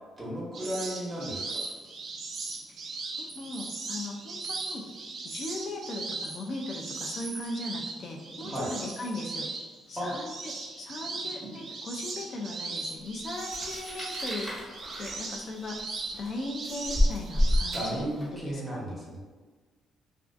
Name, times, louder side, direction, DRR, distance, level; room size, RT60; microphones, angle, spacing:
voice 1, 0.2-1.6 8.4-8.7 10.0-10.1 17.7-19.2, right 1 dB, 10° right, -5 dB, 0.9 m, -34 dB
sound 1, 0.5-17.9, right 3 dB, 60° right, 0.4 m, -38 dB
voice 2, 2.7-4.8 5.2-9.5 9.9-14.5 15.0-15.8 16.1-18.1 18.3-18.9, left 2 dB, 55° left, 1 dB, 0.3 m, -38 dB
sound 2, 13.3-18.4, left 1 dB, 10° left, 1.2 m, -30 dB
2.4 x 2.3 x 2.4 m, 1.4 s
cardioid pair, 90°, 0 cm